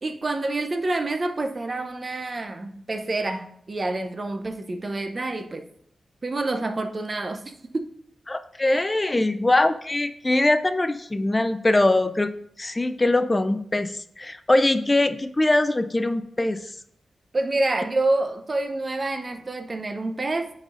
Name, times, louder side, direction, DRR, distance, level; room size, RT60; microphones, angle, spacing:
voice 1, 0.0-5.7 6.2-7.9 17.3-20.5, right 2 dB, 45° right, 0.6 m, -27 dB
voice 2, 8.3-12.3 12.6-16.7, left 2 dB, 25° left, 0.4 m, -22 dB
9.8 x 4.1 x 2.5 m
cardioid pair, 50°, 0 cm